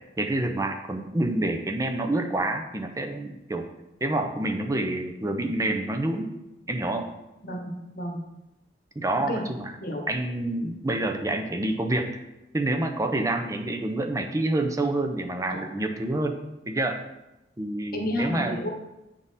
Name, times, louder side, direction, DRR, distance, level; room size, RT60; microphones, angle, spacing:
voice 1, 0.2-3.7 4.0-6.3 6.7-7.1 9.0-9.7 10.1-12.2 12.5-16.4 16.7-17.0 17.6-18.7, right 2 dB, 15° right, 6 dB, 0.5 m, -27 dB
voice 2, 7.4-8.2 9.3-9.4 9.8-10.0 15.5-15.7 17.9-18.7, equal, 50° left, 2 dB, 1.0 m, -31 dB
8.6 x 3.7 x 4.1 m, 0.96 s
head